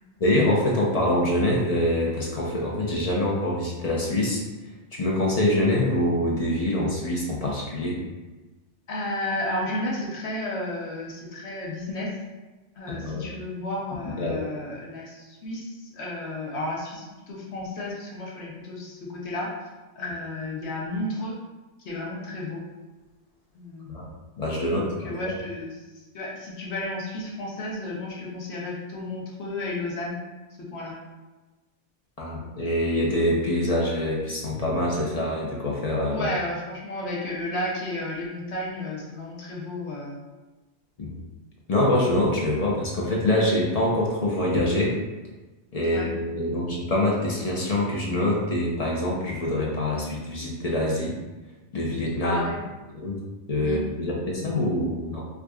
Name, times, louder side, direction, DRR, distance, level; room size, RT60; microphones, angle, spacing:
voice 1, 0.2-4.4 4.9-8.0 12.9-13.3 14.0-14.5 23.9-24.1 24.4-25.4 32.2-36.3 41.0-41.2 41.7-45.0 45.7-51.1 51.7-52.4 52.9-53.2 53.5-55.2, left 1 dB, 45° left, -3 dB, 0.5 m, -25 dB
voice 2, 8.9-12.1 12.8-19.5 20.0-21.4 21.8-22.6 23.5-24.0 24.8-25.7 26.1-30.2 30.7-30.9 36.1-40.2 45.8-46.1 52.2-52.6 53.6-53.8, left 1 dB, 65° left, -3 dB, 1.1 m, -32 dB
4.6 x 2.5 x 2.3 m, 1.2 s
omnidirectional pair, 1.3 m